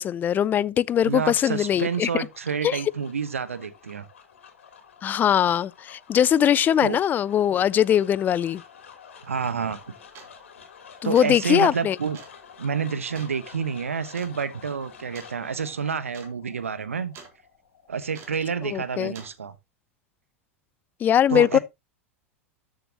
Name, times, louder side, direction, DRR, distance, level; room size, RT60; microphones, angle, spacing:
voice 1, 0.0-2.3 2.6-2.8 5.0-8.6 11.0-12.0 18.7-19.1 21.0-21.6, left 10 dB, 25° left, 0.4 m, -21 dB
voice 2, 1.0-4.0 6.8-7.0 9.3-9.9 11.0-12.2 12.6-17.1 17.9-19.5 21.3-21.6, right 6 dB, 75° right, 1.0 m, -29 dB
sound 1, 1.3-19.3, left 7 dB, 65° left, 3.0 m, -50 dB
sound 2, 9.2-9.4 10.1-10.5 11.0-11.4 12.1-12.4 13.1-13.4 14.1-14.4 15.1-15.4 15.7-15.8 16.1-16.3 16.6-17.3 18.1-18.5 19.1-19.4, right 6 dB, 35° right, 2.9 m, -46 dB
13.0 x 6.7 x 2.9 m
figure-of-eight pair, 85°, 7 cm